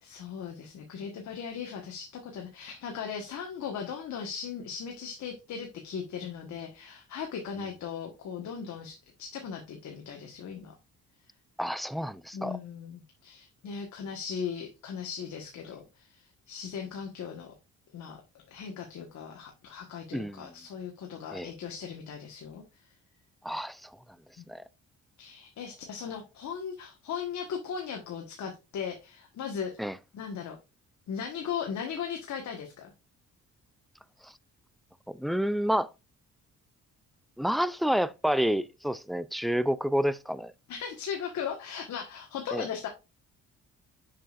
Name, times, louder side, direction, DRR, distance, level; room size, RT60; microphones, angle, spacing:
voice 1, 0.0-10.7 12.3-17.5 17.9-18.2 18.5-22.6 24.4-24.5 25.2-29.9 30.1-30.6 31.1-32.9 40.7-42.9, left 7 dB, 70° left, 1.5 m, -38 dB
voice 2, 11.6-12.6 20.1-20.5 21.3-21.5 23.4-23.9 24.5-24.6 29.8-30.0 34.2-34.3 35.1-35.9 37.4-40.5 42.5-42.7, equal, ahead, 0.4 m, -29 dB
6.5 x 6.2 x 2.5 m
cardioid pair, 90°, 30 cm